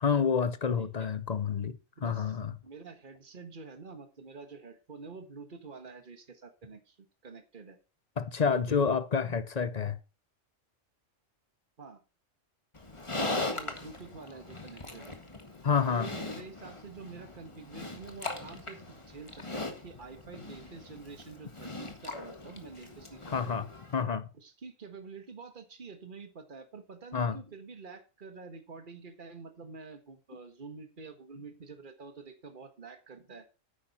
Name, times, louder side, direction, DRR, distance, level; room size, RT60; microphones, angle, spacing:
voice 1, 0.0-1.8 2.0-2.5 8.2-10.0 15.6-16.1 23.3-23.6 23.9-24.3 27.1-27.4, left 6 dB, 40° left, 0.6 m, -28 dB
voice 2, 0.8-1.1 2.0-7.8 8.5-8.8 11.8-12.0 13.4-15.2 15.9-23.5 24.3-33.5, right 4 dB, 40° right, 1.7 m, -47 dB
Livestock farm animals working animals, 12.7-24.0, left 2 dB, 25° left, 1.7 m, -40 dB
10.0 x 8.8 x 4.2 m
omnidirectional pair, 1.3 m